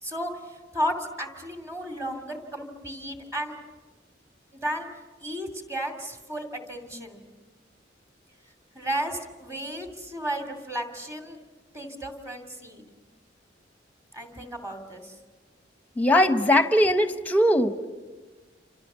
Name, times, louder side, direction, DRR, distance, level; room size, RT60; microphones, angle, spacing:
voice 1, 0.0-3.6 4.5-4.9 5.2-7.2 8.7-11.4 11.7-12.8 14.1-15.1, equal, 15° right, 5 dB, 2.7 m, -33 dB
voice 2, 16.0-17.7, left 1 dB, 10° left, 9 dB, 1.1 m, -20 dB
28.5 x 26.5 x 6.9 m, 1.3 s
head